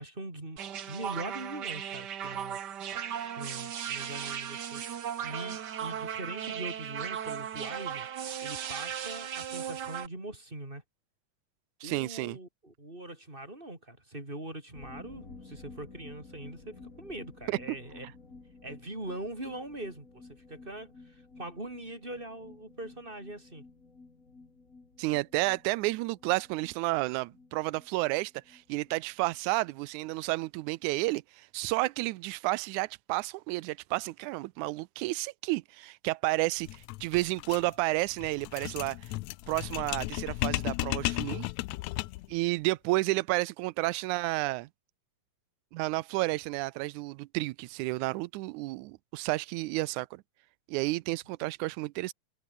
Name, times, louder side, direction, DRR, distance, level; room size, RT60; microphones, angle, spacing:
voice 1, 0.0-2.6 3.4-4.8 5.2-10.8 11.8-18.1 18.6-23.6 51.4-51.5, right 1 dB, 15° right, 4.9 m, -42 dB
sound 1, 0.6-10.1, right 9 dB, 55° right, 1.2 m, -37 dB
voice 2, 11.8-12.4 17.5-17.8 25.0-39.1 39.5-41.5 42.3-44.7 45.7-50.2 50.7-52.1, right 21 dB, 85° right, 2.0 m, -31 dB
sound 2, 14.7-30.1 30.4-30.5 30.8-30.9, left 3 dB, 25° left, 3.4 m, -53 dB
sound 3, 36.6-42.3, left 19 dB, 80° left, 1.8 m, -34 dB
omnidirectional pair, 3.4 m